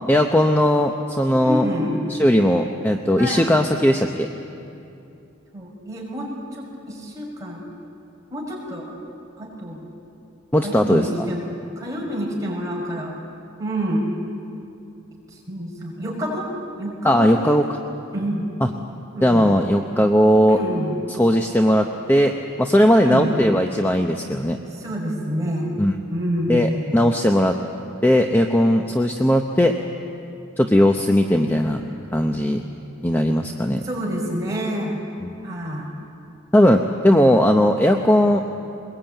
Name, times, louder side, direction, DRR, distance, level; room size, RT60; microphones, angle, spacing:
voice 1, 0.1-1.7 2.1-4.3 10.5-11.1 17.0-17.6 19.2-20.6 21.2-22.3 22.6-24.6 25.8-25.9 26.5-27.5 28.0-29.7 30.6-31.8 32.1-32.6 33.0-33.8 35.2-35.3 36.5-38.4, equal, 10° left, 3 dB, 0.8 m, -18 dB
voice 2, 1.4-2.1 3.2-3.5 5.5-7.6 8.3-8.9 9.4-9.8 10.6-11.5 11.8-13.1 13.6-14.1 15.3-16.5 16.8-17.3 18.1-18.5 19.1-19.5 20.5-20.9 22.9-23.4 24.7-25.7 26.1-27.0 33.8-35.0 35.4-35.9 37.0-37.2, equal, 15° right, -3 dB, 5.9 m, -27 dB
22.5 x 21.0 x 9.1 m, 2.7 s
head